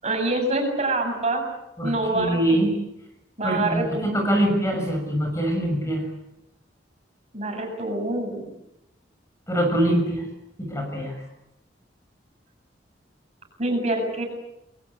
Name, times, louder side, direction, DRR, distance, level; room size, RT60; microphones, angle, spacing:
voice 1, 0.0-1.4 1.8-2.6 3.4-4.0 7.3-8.5 13.6-14.3, right 2 dB, 35° right, 3 dB, 7.8 m, -25 dB
voice 2, 1.8-2.7 3.4-6.0 9.5-10.2 10.6-11.1, right 1 dB, 15° left, 3 dB, 6.2 m, -23 dB
29.5 x 22.0 x 8.4 m, 0.85 s
head